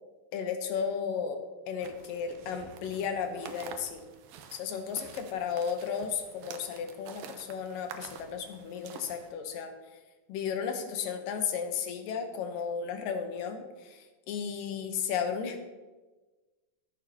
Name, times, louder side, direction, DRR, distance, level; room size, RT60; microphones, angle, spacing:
voice 1, 0.3-1.4 1.7-4.0 4.5-9.7 10.3-15.7, left 7 dB, 75° left, 6 dB, 2.5 m, -34 dB
sound 1, 1.8-9.3, right 6 dB, 75° right, 2.4 m, -48 dB
15.0 x 9.4 x 2.9 m, 1.2 s
omnidirectional pair, 4.1 m